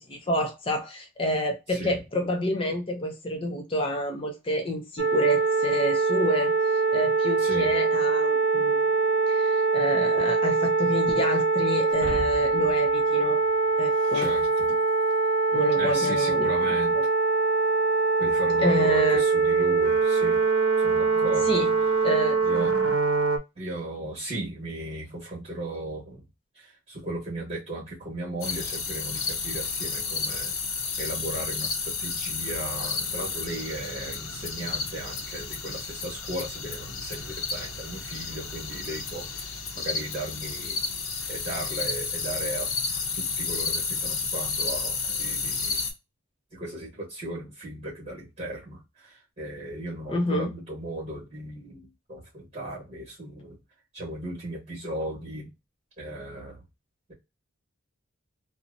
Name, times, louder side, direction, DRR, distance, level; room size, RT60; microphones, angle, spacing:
voice 1, 0.0-6.5 6.9-8.8 9.3-13.4 13.8-14.3 15.5-16.5 17.0-17.1 18.6-19.2 21.2-21.7 22.0-22.4 50.1-50.5, equal, 25° left, 0.4 m, -28 dB
sound 1, 5.0-23.4, right 4 dB, 90° right, 0.6 m, -23 dB
voice 2, 7.4-7.7 14.1-14.5 15.8-17.0 18.2-20.4 20.8-21.6 22.4-22.7 23.6-26.2 26.5-30.5 31.0-40.8 41.3-45.9 46.5-53.6 53.9-55.5 56.0-56.6, right 1 dB, 35° right, 1.1 m, -36 dB
Shatter, 11.9-15.4, equal, 55° right, 0.9 m, -40 dB
sound 2, 28.4-45.9, left 4 dB, 75° left, 0.6 m, -31 dB
2.7 x 2.0 x 2.4 m
head